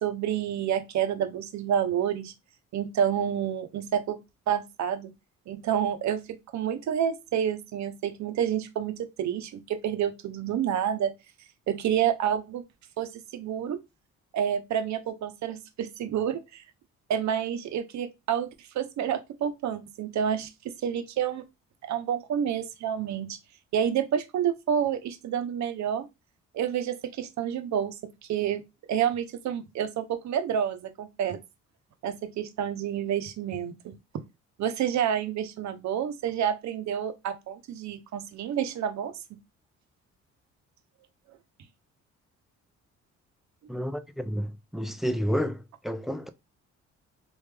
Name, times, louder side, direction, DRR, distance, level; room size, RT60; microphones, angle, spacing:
voice 1, 0.0-2.3 2.7-4.2 4.5-5.1 5.5-6.2 6.5-11.1 11.7-12.6 13.0-13.8 14.3-16.6 17.1-21.4 21.8-23.4 23.7-26.1 26.5-28.6 28.9-31.4 32.0-33.9 34.6-39.1, right 9 dB, 65° right, 0.7 m, -29 dB
voice 2, 43.7-46.3, equal, ahead, 0.3 m, -30 dB
3.3 x 2.5 x 3.2 m
cardioid pair, 90°, 30 cm